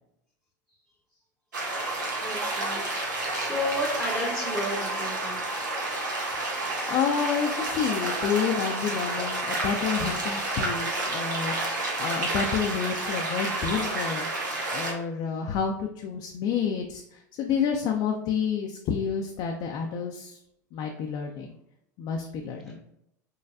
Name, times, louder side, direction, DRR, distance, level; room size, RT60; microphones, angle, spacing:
sound 1, 1.5-14.9, right 2 dB, 80° right, 1.0 m, -30 dB
voice 1, 1.9-5.4, left 1 dB, ahead, -1 dB, 0.9 m, -33 dB
voice 2, 6.5-14.3 14.7-20.4 20.7-21.5 22.0-22.8, left 7 dB, 50° left, 2 dB, 0.5 m, -29 dB
5.4 x 3.2 x 2.5 m, 0.79 s
hypercardioid pair, 80°, 10 cm